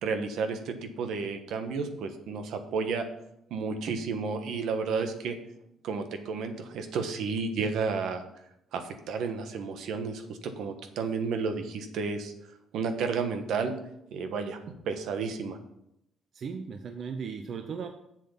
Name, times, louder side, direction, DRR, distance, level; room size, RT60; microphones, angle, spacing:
voice 1, 0.0-3.1 3.5-5.4 5.8-8.2 8.7-12.3 12.7-13.7 14.1-14.6 14.9-15.6, right 5 dB, 75° right, 7 dB, 1.3 m, -32 dB
voice 2, 16.3-17.9, right 6 dB, 50° right, 6 dB, 0.7 m, -36 dB
7.8 x 7.2 x 5.7 m, 0.80 s
cardioid pair, 145°, 0 cm